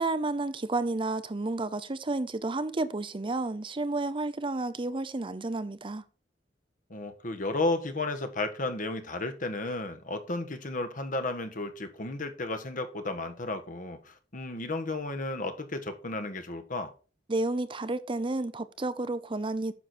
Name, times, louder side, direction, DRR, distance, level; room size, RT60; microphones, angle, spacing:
voice 1, 0.0-6.0 17.3-19.7, right 2 dB, 30° right, 0.6 m, -31 dB
voice 2, 6.9-16.9, left 2 dB, 50° left, 1.4 m, -33 dB
9.9 x 6.5 x 4.3 m
head